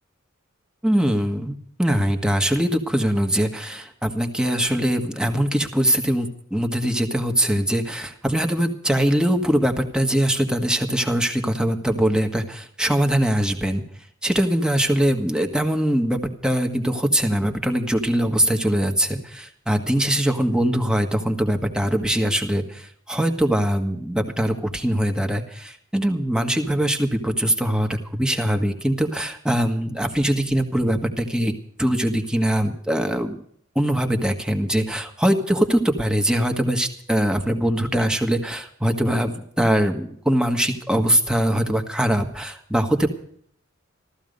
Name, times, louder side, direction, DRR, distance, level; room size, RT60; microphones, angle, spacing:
voice 1, 0.8-13.8 14.2-31.5 31.8-33.4 33.7-43.1, right 1 dB, 5° right, 4 dB, 1.6 m, -22 dB
15.0 x 14.5 x 5.3 m, 0.63 s
head